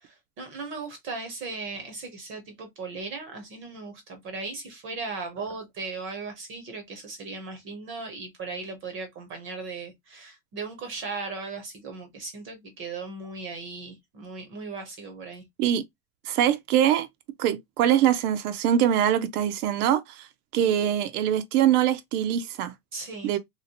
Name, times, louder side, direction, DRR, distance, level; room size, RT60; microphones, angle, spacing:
voice 1, 0.0-15.4 22.9-23.3, right 4 dB, 25° right, 0.6 m, -37 dB
voice 2, 16.3-17.1 17.4-20.3 20.5-22.7 23.2-23.4, right 10 dB, 70° right, 0.6 m, -23 dB
2.9 x 2.8 x 2.8 m
supercardioid pair, 165°, 47 cm